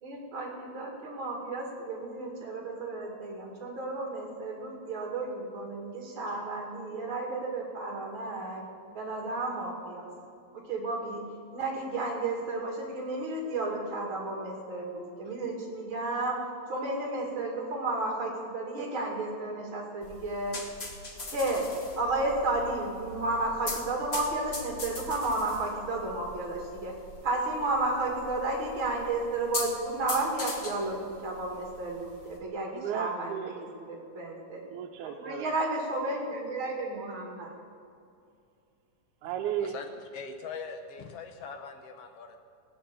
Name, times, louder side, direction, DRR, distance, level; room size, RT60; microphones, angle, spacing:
voice 1, 0.0-8.6 8.9-10.1 10.5-11.2 11.5-16.4 16.7-20.6 21.3-26.9 27.2-33.3 33.8-34.7 35.0-37.5, right 2 dB, 45° right, 0 dB, 3.0 m, -32 dB
sound 1, 20.0-32.4, left 2 dB, 90° left, 0.5 m, -41 dB
voice 2, 32.7-33.6 34.7-35.5 39.2-39.8, right 10 dB, 85° right, 3 dB, 2.1 m, -35 dB
voice 3, 40.1-42.4, left 5 dB, 70° left, 6 dB, 1.5 m, -41 dB
16.0 x 8.9 x 6.9 m, 2.4 s
omnidirectional pair, 3.4 m